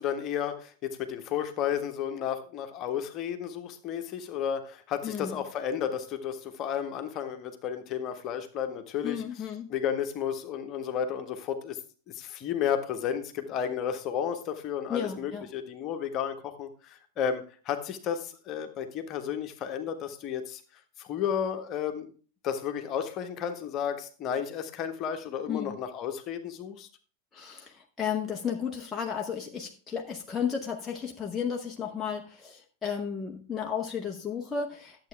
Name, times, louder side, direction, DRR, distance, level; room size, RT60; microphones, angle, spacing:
voice 1, 0.0-9.2 9.7-11.8 12.1-20.6 21.0-22.1 22.4-26.9, left 8 dB, 35° left, 7 dB, 1.4 m, -32 dB
voice 2, 5.0-5.4 9.0-9.7 14.9-15.5 25.5-25.8 27.3-35.1, left 7 dB, 15° left, 0 dB, 1.0 m, -33 dB
11.5 x 7.9 x 3.4 m, 0.39 s
figure-of-eight pair, 90°, 0 cm